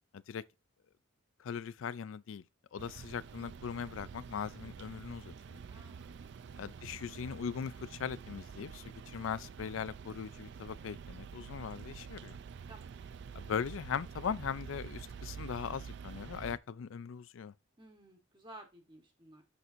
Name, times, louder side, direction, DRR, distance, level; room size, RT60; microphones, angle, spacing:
voice 1, 1.4-2.4 2.7-5.6 6.6-12.4 13.4-17.5, left 7 dB, 70° left, 0.4 m, -40 dB
sound 1, 2.8-16.6, right 6 dB, 55° right, 0.4 m, -48 dB
voice 2, 5.7-6.5 12.7-12.9 17.8-19.4, right 1 dB, 25° right, 1.3 m, -55 dB
8.2 x 6.1 x 2.5 m
head